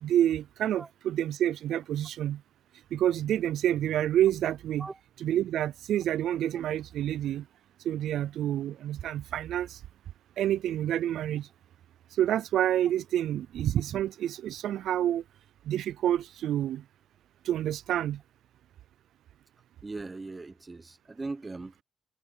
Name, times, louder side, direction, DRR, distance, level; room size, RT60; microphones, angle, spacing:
voice 1, 0.0-2.4 2.9-4.9 5.2-7.4 7.9-9.8 10.4-11.5 12.2-15.2 15.7-16.8 17.4-18.2, right 11 dB, 75° right, 0.3 m, -28 dB
voice 2, 19.8-21.8, right 3 dB, 25° right, 1.0 m, -39 dB
cardioid pair, 90°, 0 cm